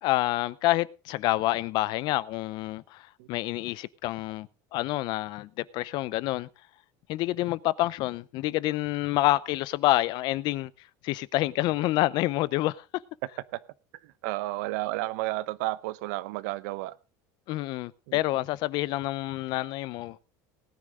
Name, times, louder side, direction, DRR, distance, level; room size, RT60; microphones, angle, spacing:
voice 1, 0.0-6.5 7.1-10.7 11.0-12.8 17.5-20.3, left 17 dB, 55° left, 0.6 m, -28 dB
voice 2, 14.2-16.9 18.1-18.2, right 18 dB, 80° right, 0.8 m, -31 dB
18.5 x 9.9 x 3.8 m
cardioid pair, 135°, 9 cm